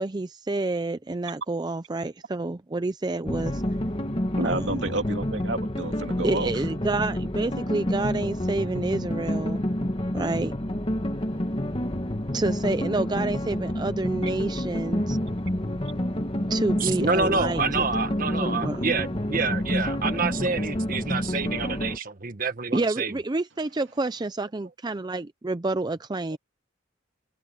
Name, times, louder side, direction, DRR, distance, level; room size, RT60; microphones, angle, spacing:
voice 1, 0.0-3.6 4.4-4.8 6.2-9.6 10.1-10.5 12.3-15.2 16.5-17.9 18.4-18.8 22.7-26.4, right 2 dB, 20° right, 0.4 m, -29 dB
sound 1, 3.2-22.0, left 1 dB, 30° left, 1.6 m, -28 dB
voice 2, 4.4-6.5, right 2 dB, 65° right, 2.5 m, -30 dB
voice 3, 16.8-23.1 26.3-26.4, right 4 dB, 45° right, 1.5 m, -28 dB
head